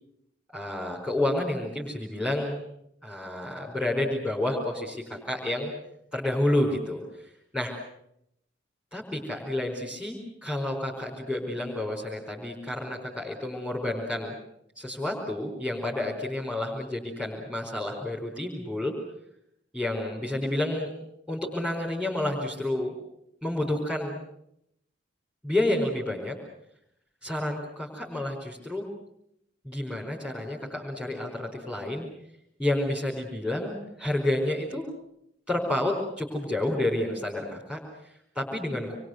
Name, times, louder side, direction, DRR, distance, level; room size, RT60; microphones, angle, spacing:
voice 1, 0.5-2.6 3.0-5.7 6.1-7.8 8.9-14.3 14.7-18.9 19.7-20.9 21.3-22.9 23.4-24.2 25.4-26.3 27.2-28.9 29.6-32.1 32.6-34.8 35.5-39.0, left 1 dB, 5° right, -4 dB, 4.6 m, -30 dB
27.5 x 23.0 x 8.0 m, 0.77 s
head